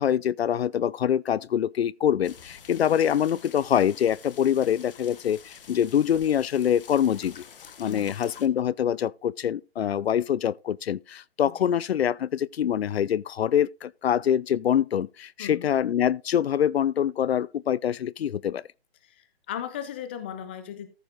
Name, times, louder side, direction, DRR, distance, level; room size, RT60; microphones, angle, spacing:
voice 1, 0.0-7.4 7.8-18.6, left 9 dB, 80° left, 0.5 m, -25 dB
sound 1, 2.2-8.5, left 7 dB, 60° left, 1.3 m, -48 dB
voice 2, 7.8-8.2 11.4-11.6 15.4-15.7 19.0-20.9, left 9 dB, 10° left, 0.4 m, -37 dB
14.0 x 4.8 x 3.8 m
hypercardioid pair, 150°, 31 cm